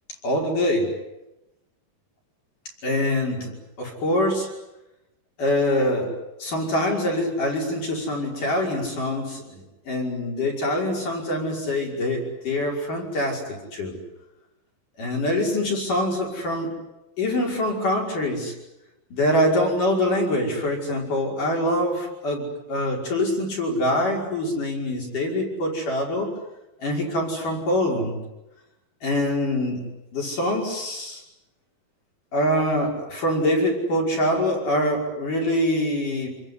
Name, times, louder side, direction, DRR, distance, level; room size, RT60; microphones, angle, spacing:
voice 1, 0.2-0.9 2.8-3.5 3.8-4.5 5.4-6.1 6.4-9.6 9.9-13.9 15.0-16.7 17.2-18.5 19.1-26.3 26.8-28.2 29.0-31.2 32.3-36.3, left 1 dB, 60° left, 2 dB, 7.2 m, -24 dB
28.0 x 21.5 x 9.8 m, 0.95 s
omnidirectional pair, 4.1 m